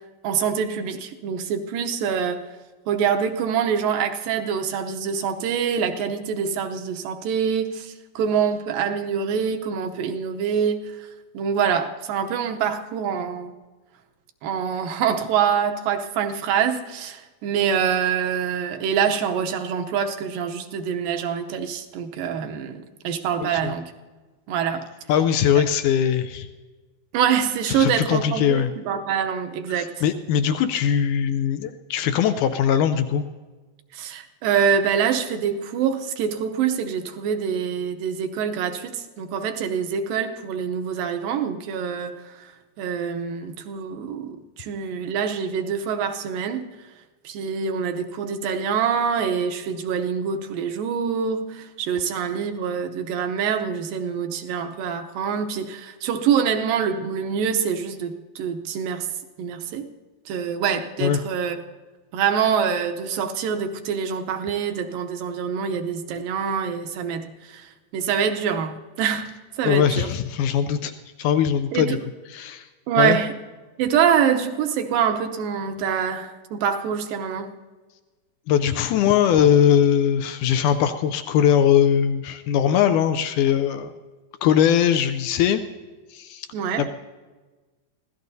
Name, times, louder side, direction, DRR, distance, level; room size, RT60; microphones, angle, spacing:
voice 1, 0.2-2.4 2.9-11.1 11.3-13.6 14.4-23.9 24.5-24.9 27.1-29.9 33.9-42.5 42.8-46.7 47.2-59.1 59.4-59.9 60.3-61.6 62.1-69.3 69.6-70.1 71.7-72.0 72.9-73.3 73.8-77.5 86.5-86.9, right 7 dB, 75° right, 6 dB, 2.5 m, -25 dB
voice 2, 23.4-23.7 25.1-26.5 27.7-28.7 29.7-33.2 61.0-61.2 69.6-70.9 71.2-72.0 72.3-72.7 73.0-73.2 78.5-83.9 84.4-85.6 86.1-86.5 86.8-86.9, left 9 dB, 80° left, 9 dB, 1.8 m, -20 dB
25.0 x 16.5 x 2.7 m, 1.3 s
omnidirectional pair, 4.1 m